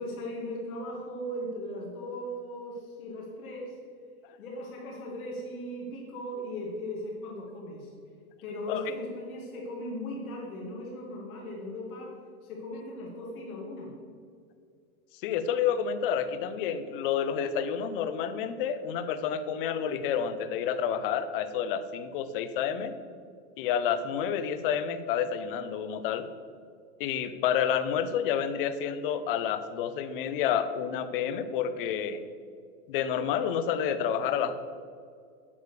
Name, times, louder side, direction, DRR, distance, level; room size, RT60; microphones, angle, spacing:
voice 1, 0.0-3.7 4.4-7.9 8.4-12.1 12.4-13.9, left 1 dB, 75° left, -2 dB, 2.5 m, -38 dB
voice 2, 15.2-22.9 23.6-26.2 27.0-32.2 32.9-34.5, left 8 dB, 40° left, 11 dB, 0.6 m, -29 dB
8.5 x 6.4 x 6.7 m, 2.2 s
supercardioid pair, 160°, 43 cm